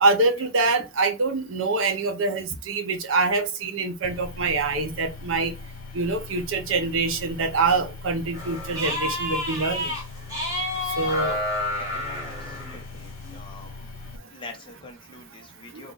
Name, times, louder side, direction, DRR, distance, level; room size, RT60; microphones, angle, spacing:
voice 1, 0.0-5.5 5.9-9.9 11.0-11.4 15.7-15.8, right 3 dB, 65° right, 0.6 m, -25 dB
sound 1, 4.0-14.2, left 4 dB, 65° left, 0.6 m, -41 dB
sound 2, 8.3-10.0 10.3-12.8, left 1 dB, 15° right, 1.5 m, -29 dB
voice 2, 12.2-13.7 14.3-15.9, left 2 dB, 25° left, 0.7 m, -44 dB
2.9 x 2.3 x 3.8 m
head